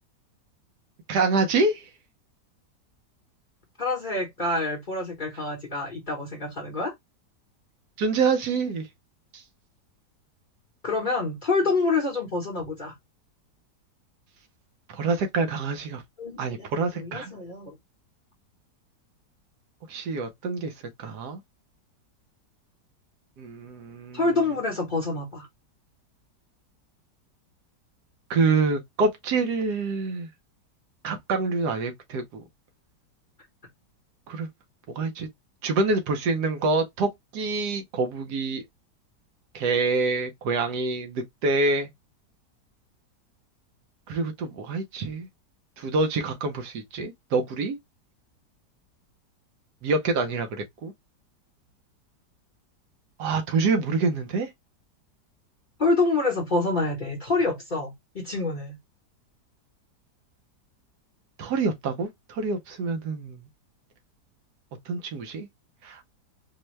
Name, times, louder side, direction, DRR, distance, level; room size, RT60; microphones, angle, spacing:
voice 1, 1.1-1.8 8.0-8.9 9.3-9.4 14.9-16.0 16.4-17.3 19.9-20.7 21.0-21.4 23.4-24.2 28.3-30.3 31.0-32.4 34.3-34.5 34.9-35.3 35.6-38.6 39.5-41.9 44.1-45.3 45.8-47.8 49.8-50.9 53.2-54.5 61.4-63.4 64.9-65.5 65.8-66.0, right 3 dB, 70° right, 1.3 m, -26 dB
voice 2, 3.8-6.9 10.8-12.9 16.2-17.7 24.1-25.5 55.8-58.8, left 3 dB, 35° left, 0.9 m, -27 dB
4.4 x 2.1 x 3.1 m
omnidirectional pair, 1.8 m